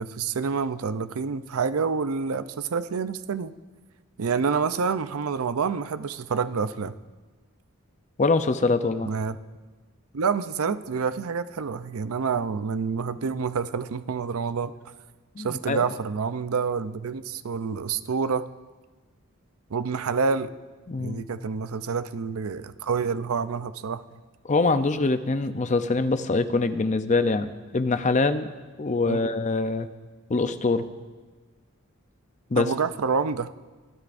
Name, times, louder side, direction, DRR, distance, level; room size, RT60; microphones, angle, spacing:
voice 1, 0.0-3.5 4.2-6.9 9.0-9.4 10.1-14.7 15.4-18.4 19.7-20.5 21.0-24.0 29.1-29.3 32.6-33.5, right 5 dB, 90° right, 12 dB, 0.5 m, -28 dB
voice 2, 8.2-9.1 15.4-15.8 20.9-21.3 24.4-28.5 28.8-29.9 30.3-30.8 32.5-32.7, left 3 dB, 35° left, 10 dB, 0.6 m, -24 dB
24.0 x 13.0 x 2.6 m, 1.3 s
head